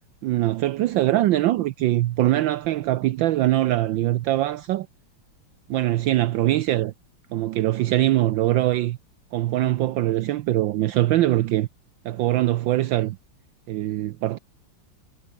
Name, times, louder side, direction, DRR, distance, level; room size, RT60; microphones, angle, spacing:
voice 1, 0.2-4.9 5.7-6.9 7.3-9.0 9.3-11.7 12.0-13.2 13.7-14.4, right 15 dB, 70° right, 1.3 m, -22 dB
omnidirectional pair, 2.3 m